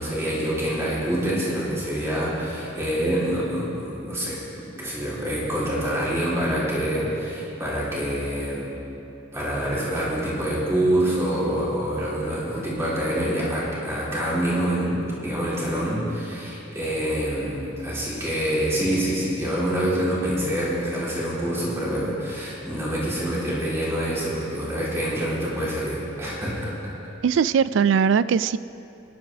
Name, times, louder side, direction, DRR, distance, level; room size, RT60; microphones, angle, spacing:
voice 1, 0.0-4.4 4.8-8.7 9.3-26.7, right 1 dB, 15° right, -8 dB, 3.7 m, -26 dB
voice 2, 27.2-28.6, right 6 dB, 65° right, 16 dB, 0.3 m, -20 dB
22.5 x 11.0 x 3.5 m, 2.9 s
head